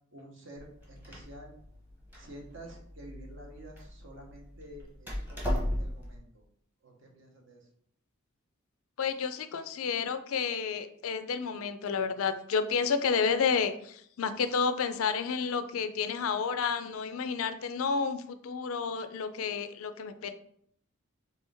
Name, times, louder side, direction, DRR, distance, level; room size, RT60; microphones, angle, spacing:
voice 1, 0.1-1.5 2.1-6.4 6.8-7.7, right 1 dB, 60° right, 1 dB, 1.0 m, -50 dB
Door, 0.6-6.2, equal, 10° right, 0.9 m, -37 dB
voice 2, 9.0-20.3, left 5 dB, 80° left, 11 dB, 0.4 m, -30 dB
4.5 x 3.4 x 3.4 m, 0.66 s
head